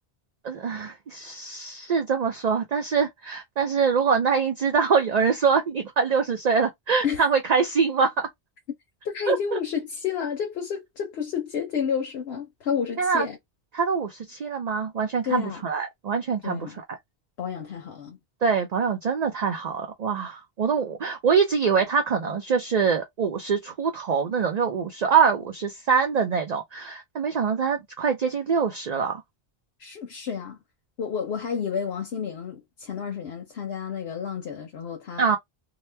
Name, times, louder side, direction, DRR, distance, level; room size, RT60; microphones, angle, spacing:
voice 1, 0.4-8.3 9.3-9.6 13.0-13.3 13.7-16.7 18.4-29.2 35.2-35.4, right 6 dB, 50° right, 0.6 m, -24 dB
voice 2, 9.0-13.4 15.2-15.6 16.4-16.8 17.4-18.2 29.8-30.6 31.0-35.4, left 7 dB, 80° left, 1.0 m, -30 dB
2.9 x 2.1 x 3.2 m
omnidirectional pair, 1.1 m